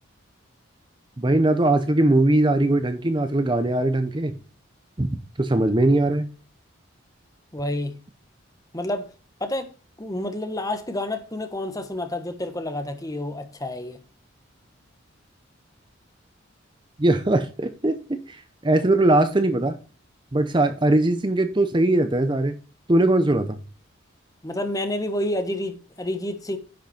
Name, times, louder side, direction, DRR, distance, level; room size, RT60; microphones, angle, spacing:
voice 1, 1.2-4.3 5.0-5.1 5.4-6.3 17.0-19.8 20.3-22.5 22.9-23.6, right 2 dB, 25° right, 0.7 m, -20 dB
voice 2, 7.5-7.9 8.7-9.1 9.4-9.7 10.0-14.0 24.4-26.6, left 1 dB, 15° left, 1.2 m, -29 dB
10.5 x 5.9 x 4.3 m
head